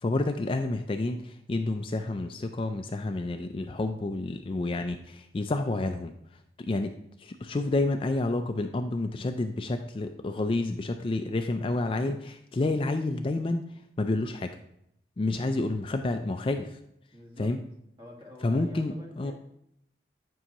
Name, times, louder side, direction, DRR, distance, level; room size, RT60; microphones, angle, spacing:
voice 1, 0.0-6.1 6.6-6.9 7.2-13.6 14.0-14.5 15.2-16.8 17.4-17.6 18.4-19.3, left 2 dB, 30° left, 6 dB, 0.3 m, -29 dB
voice 2, 17.1-17.5 18.0-19.3, left 1 dB, 30° right, -1 dB, 1.5 m, -47 dB
9.8 x 5.5 x 2.9 m, 0.75 s
head